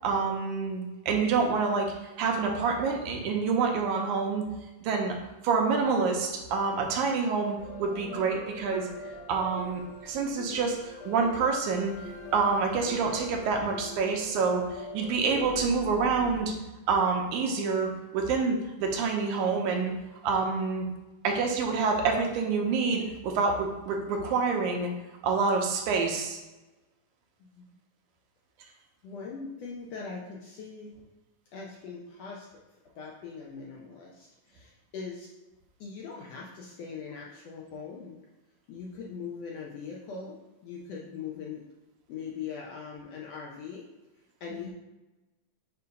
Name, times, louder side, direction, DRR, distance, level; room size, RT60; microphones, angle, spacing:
voice 1, 0.0-4.4 4.8-5.1 5.4-8.9 9.3-11.9 12.3-14.6 14.9-16.5 16.9-19.9 20.2-20.8 21.2-24.9 25.2-26.4 44.5-44.6, right 4 dB, 75° right, 2 dB, 2.1 m, -27 dB
sound 1, 7.6-16.4, left 2 dB, 50° left, 1.6 m, -43 dB
voice 2, 29.0-30.9 31.5-32.5 33.0-35.3 35.8-38.2 38.7-40.4 40.6-41.6 42.1-43.8 44.4-44.7, left 5 dB, 75° left, -3 dB, 1.6 m, -41 dB
6.7 x 2.7 x 5.1 m, 1.1 s
omnidirectional pair, 3.6 m